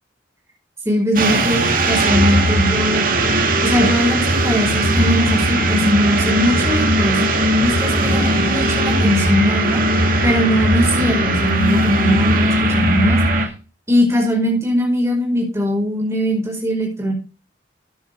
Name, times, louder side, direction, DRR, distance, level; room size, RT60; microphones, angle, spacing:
voice 1, 0.8-3.1 3.6-7.2 7.6-9.8 10.2-13.2 13.9-17.1, equal, 15° right, 1 dB, 5.1 m, -20 dB
sound 1, 1.2-13.5, right 1 dB, 50° right, 2.2 m, -18 dB
13.5 x 9.9 x 3.6 m, 0.34 s
head